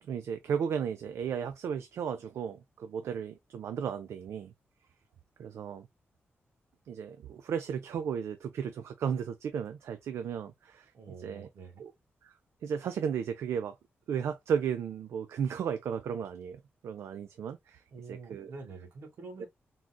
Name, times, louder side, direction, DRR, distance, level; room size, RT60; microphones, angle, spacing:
voice 1, 0.0-4.5 5.4-5.9 6.9-10.9 11.2-11.5 11.8-11.9 12.2-12.3 12.6-13.7 14.1-17.8 18.1-18.5 19.4-19.5, right 7 dB, 85° right, 0.3 m, -34 dB
voice 2, 10.9-11.9 17.9-19.5, right 4 dB, 70° right, 1.3 m, -46 dB
3.8 x 2.4 x 2.2 m
wide cardioid pair, 165°, 5 cm